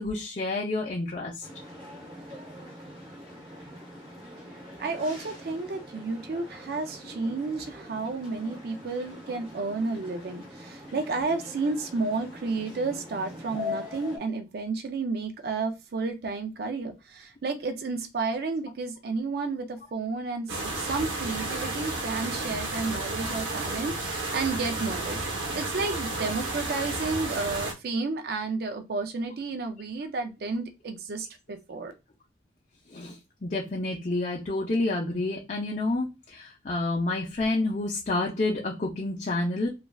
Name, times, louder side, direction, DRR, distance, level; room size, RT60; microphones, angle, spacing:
voice 1, 0.0-1.5 32.9-39.7, left 2 dB, 40° left, -2 dB, 0.5 m, -29 dB
sound 1, 1.4-14.2, left 2 dB, 25° right, 0.9 m, -42 dB
voice 2, 4.8-25.2 25.5-31.9, right 3 dB, 55° right, 7 dB, 0.4 m, -31 dB
sound 2, 20.5-27.7, right 2 dB, 85° right, 0.9 m, -32 dB
3.1 x 2.4 x 2.3 m, 0.26 s
head